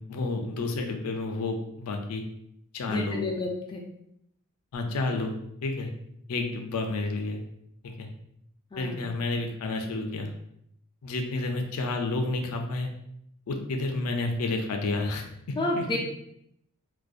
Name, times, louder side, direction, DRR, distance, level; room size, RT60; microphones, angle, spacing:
voice 1, 0.1-2.2 2.7-3.2 4.7-5.3 5.6-5.9 6.3-7.4 7.8-8.1 8.8-10.3 11.0-12.9 13.5-15.2 15.8-16.0, left 2 dB, 90° left, 4 dB, 0.4 m, -30 dB
voice 2, 2.9-3.8 8.7-9.1 15.6-16.0, left 2 dB, 20° left, -1 dB, 0.3 m, -30 dB
2.5 x 2.2 x 2.4 m, 0.74 s
head